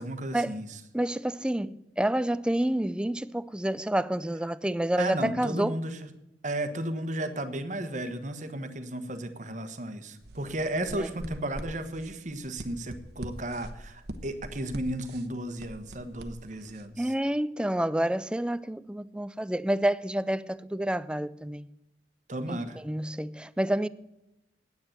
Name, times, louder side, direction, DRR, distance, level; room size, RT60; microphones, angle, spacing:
voice 1, 0.0-0.8 5.0-6.1 6.4-17.1 22.3-22.8, right 1 dB, 45° right, 1.3 m, -34 dB
voice 2, 0.9-5.8 10.9-11.1 17.0-21.7 22.5-22.6 22.8-23.9, right 1 dB, 5° right, 0.3 m, -28 dB
sound 1, 10.2-16.8, right 1 dB, 65° right, 1.1 m, -43 dB
9.7 x 9.5 x 8.9 m
head